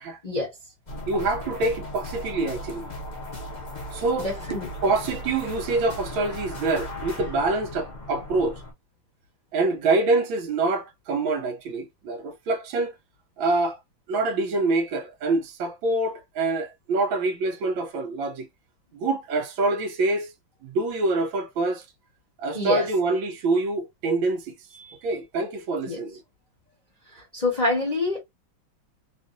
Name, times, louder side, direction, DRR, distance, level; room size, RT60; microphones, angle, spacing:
sound 1, 0.9-8.7, left 1 dB, 75° left, 0.4 m, -37 dB
voice 1, 1.1-2.9 3.9-8.6 9.5-12.9 13.4-13.8 14.1-18.5 18.9-20.3 20.6-21.8 22.4-24.5 25.0-26.2, right 3 dB, 80° right, 1.4 m, -26 dB
voice 2, 4.2-4.9 22.5-22.9 24.8-25.0 25.9-26.0 27.1-28.2, left 2 dB, 30° left, 0.8 m, -27 dB
3.4 x 2.4 x 2.5 m
omnidirectional pair, 2.2 m